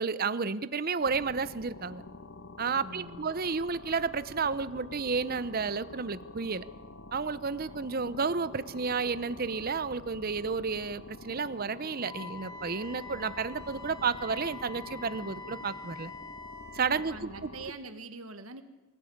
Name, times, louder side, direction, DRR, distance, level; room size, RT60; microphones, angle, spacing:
voice 1, 0.0-2.0 2.6-6.7 7.1-16.1 16.7-17.5, right 5 dB, 45° right, 15 dB, 0.7 m, -31 dB
sound 1, 1.0-17.7, left 2 dB, 60° left, 1.3 m, -47 dB
voice 2, 2.8-3.3 7.7-7.8 17.1-18.6, right 3 dB, 80° right, 9 dB, 1.6 m, -44 dB
Wind instrument woodwind instrument, 12.0-17.1, left 4 dB, 20° left, 3.2 m, -45 dB
25.0 x 15.5 x 8.7 m, 1.1 s
head